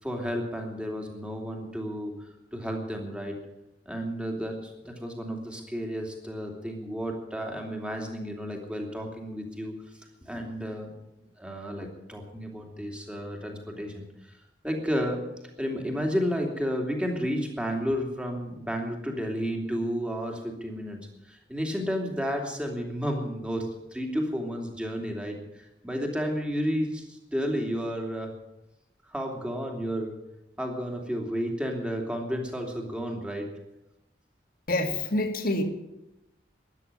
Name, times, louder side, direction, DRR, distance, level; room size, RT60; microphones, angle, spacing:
voice 1, 0.0-3.4 3.8-9.7 10.2-10.9 11.4-14.3 14.6-15.2 15.6-28.3 29.0-30.1 30.6-33.5, equal, 5° right, 2 dB, 2.8 m, -32 dB
voice 2, 34.7-35.6, left 1 dB, 50° left, 6 dB, 2.2 m, -26 dB
13.0 x 10.5 x 9.8 m, 0.91 s
head